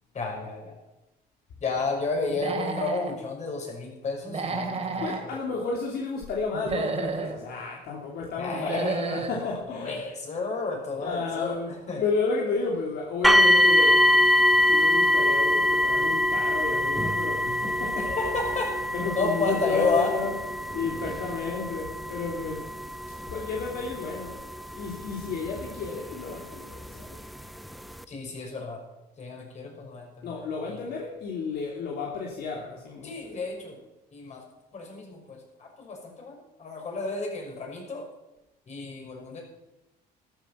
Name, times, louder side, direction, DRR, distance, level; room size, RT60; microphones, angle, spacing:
voice 1, 0.1-0.8 1.6-5.4 8.4-12.0 18.0-18.8 19.1-20.1 28.1-28.8 29.2-30.3 30.6-30.9 33.0-33.8 34.1-34.4 34.7-38.1 38.7-39.4, left 3 dB, 45° left, 1 dB, 6.1 m, -32 dB
Human voice / Animal, 2.3-3.1 4.3-5.2 6.5-7.4 8.5-9.4, right 4 dB, 40° right, 3.1 m, -31 dB
voice 2, 5.0-10.1 11.0-11.7 12.0-14.2 14.5-18.1 18.9-20.3 20.7-22.7 23.3-24.4 24.7-27.2 30.2-33.4, left 4 dB, 70° left, -2 dB, 2.9 m, -32 dB
sound 1, 13.2-26.1 27.0-27.1 27.6-27.7, left 1 dB, ahead, 0.9 m, -24 dB
14.0 x 13.5 x 5.8 m, 0.97 s
cardioid pair, 110°, 17 cm